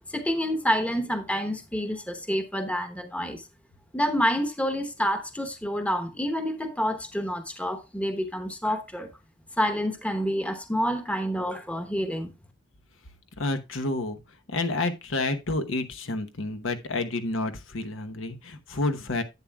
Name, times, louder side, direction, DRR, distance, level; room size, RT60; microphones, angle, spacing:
voice 1, 0.1-3.4 3.9-9.1 9.6-12.3, equal, 5° left, 1.0 m, -28 dB
voice 2, 13.4-14.2 14.5-19.2, left 2 dB, 75° left, 1.0 m, -29 dB
11.0 x 8.5 x 2.3 m
head